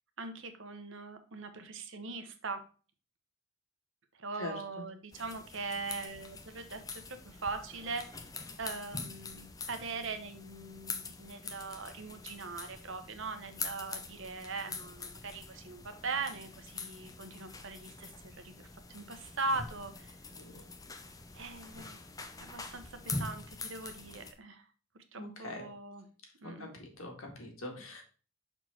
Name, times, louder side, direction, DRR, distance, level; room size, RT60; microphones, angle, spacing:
voice 1, 0.2-2.6 4.1-8.2 8.6-20.2 21.3-22.0 22.5-24.6 25.1-26.1 26.4-26.7, right 3 dB, 65° right, 8 dB, 1.1 m, -41 dB
voice 2, 4.4-4.8 20.4-20.7 25.2-25.6 26.4-28.0, left 2 dB, 85° left, 2 dB, 2.0 m, -43 dB
sound 1, 5.1-24.3, left 4 dB, 15° left, 0.5 m, -44 dB
6.0 x 4.5 x 4.2 m, 0.37 s
head